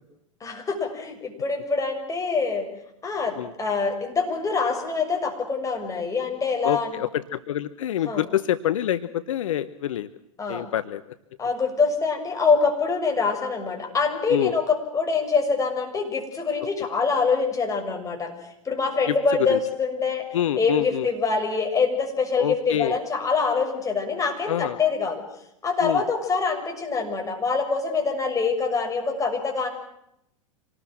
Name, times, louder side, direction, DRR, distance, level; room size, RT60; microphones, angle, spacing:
voice 1, 0.4-2.7 3.0-7.0 8.0-8.2 10.4-10.7 11.4-18.3 18.6-20.3 20.6-25.2 25.6-29.7, left 4 dB, 20° left, 3 dB, 6.7 m, -25 dB
voice 2, 6.6-10.1 10.5-11.0 14.3-14.5 19.1-19.2 19.4-19.6 20.3-21.1 22.4-23.0 24.5-24.8 25.8-26.0, left 11 dB, 65° left, 13 dB, 1.0 m, -26 dB
26.5 x 19.5 x 7.7 m, 0.80 s
figure-of-eight pair, 95°, 18 cm